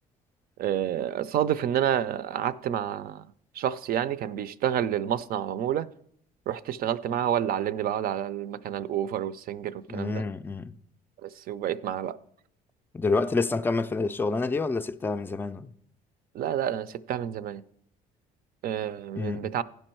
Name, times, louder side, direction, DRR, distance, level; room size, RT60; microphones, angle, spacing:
voice 1, 0.6-3.3 3.6-5.9 6.5-10.2 11.2-12.2 16.3-17.6 18.6-19.6, right 10 dB, 60° right, 0.5 m, -29 dB
voice 2, 9.9-10.7 12.9-15.7 19.2-19.5, left 3 dB, 10° left, 0.3 m, -28 dB
15.0 x 5.4 x 4.4 m
cardioid pair, 110°, 17 cm